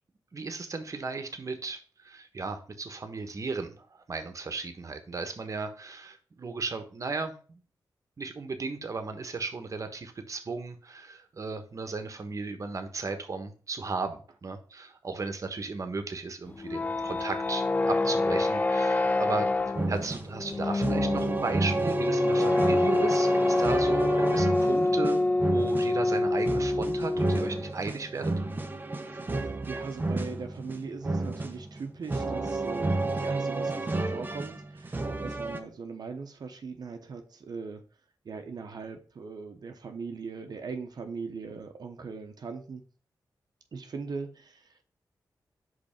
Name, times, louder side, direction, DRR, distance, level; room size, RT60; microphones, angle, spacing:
voice 1, 0.3-7.6 8.2-19.5 19.9-25.2 25.5-28.3, right 4 dB, 45° right, 7 dB, 1.2 m, -35 dB
sound 1, 16.5-27.7, left 2 dB, 20° left, 0.4 m, -26 dB
sound 2, 19.8-35.6, right 2 dB, 25° right, 0.8 m, -31 dB
voice 2, 29.1-37.8 38.2-42.8 43.7-44.8, right 4 dB, 65° right, 5 dB, 0.9 m, -40 dB
5.4 x 3.9 x 5.8 m, 0.39 s
cardioid pair, 75°, 7 cm